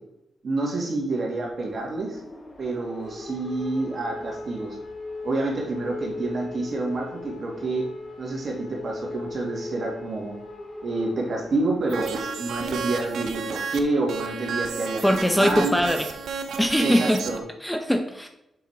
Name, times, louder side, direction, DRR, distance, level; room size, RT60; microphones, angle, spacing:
voice 1, 0.4-2.2 2.6-4.8 5.2-7.9 8.2-10.4 10.8-15.7 16.8-17.4, right 2 dB, 55° right, -1 dB, 2.2 m, -28 dB
sound 1, 1.4-12.4, left 2 dB, 40° left, 1.5 m, -38 dB
Digital Satellite Interference, 11.9-13.8 14.1-17.4, right 5 dB, 80° right, 0.6 m, -32 dB
voice 2, 15.0-16.1 16.6-17.2 17.6-18.3, equal, 5° left, 5 dB, 0.6 m, -21 dB
6.9 x 4.8 x 3.5 m, 0.86 s
cardioid pair, 70°, 0 cm